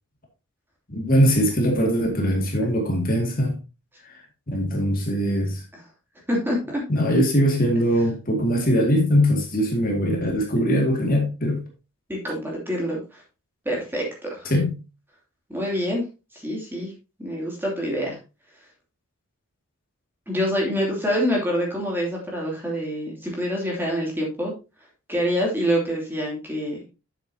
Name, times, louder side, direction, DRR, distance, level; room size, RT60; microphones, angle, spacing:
voice 1, 0.9-3.6 4.0-4.2 4.5-5.6 6.9-11.6 14.4-14.7, equal, 40° left, 1 dB, 2.2 m, -21 dB
voice 2, 6.3-6.8 12.1-13.2 13.6-14.0 14.3-14.5 15.5-16.0 16.3-16.9 17.2-18.2 20.3-24.5 25.1-26.8, equal, 10° right, -2 dB, 2.8 m, -26 dB
9.6 x 7.5 x 2.8 m, 0.29 s
head